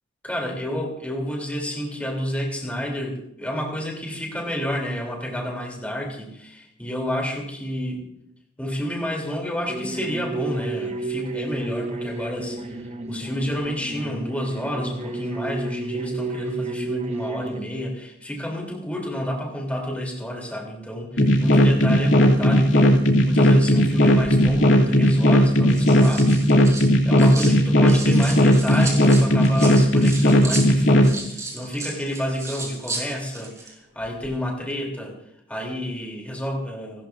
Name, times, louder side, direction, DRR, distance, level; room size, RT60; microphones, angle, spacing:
voice 1, 0.2-8.0 8.6-35.2 35.5-37.1, equal, 5° left, 0 dB, 3.2 m, -30 dB
sound 1, 9.7-17.6, right 3 dB, 35° right, 1.1 m, -31 dB
sound 2, 21.2-31.1, equal, 70° left, 2.5 m, -16 dB
sound 3, 24.4-24.6 25.5-27.6 27.9-33.7 34.0-34.3, right 3 dB, 15° right, 5.1 m, -34 dB
30.0 x 13.0 x 2.6 m, 0.78 s
head